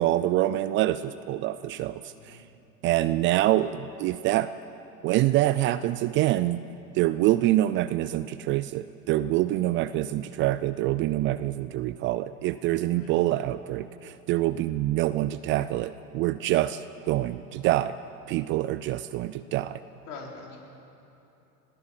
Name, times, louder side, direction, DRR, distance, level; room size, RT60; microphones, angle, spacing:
voice 1, 0.0-2.4 2.8-4.5 5.0-6.6 6.9-17.9 18.3-19.8, right 15 dB, 30° right, 14 dB, 0.4 m, -26 dB
voice 2, 2.1-2.4 12.9-13.1 20.1-20.6, left 4 dB, 75° left, 0 dB, 4.3 m, -43 dB
20.5 x 16.0 x 7.8 m, 2.9 s
hypercardioid pair, 95°, 46 cm